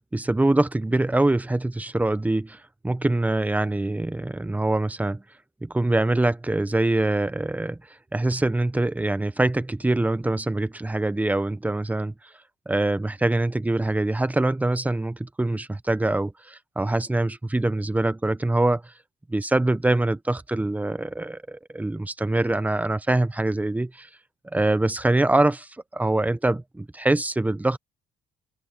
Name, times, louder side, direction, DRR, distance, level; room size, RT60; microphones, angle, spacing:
voice 1, 0.0-2.6 2.8-5.2 5.6-7.8 8.1-12.1 12.7-18.8 19.3-24.1 24.5-27.8, right 2 dB, 10° right, 1.0 m, -24 dB
cardioid pair, 110°, 17 cm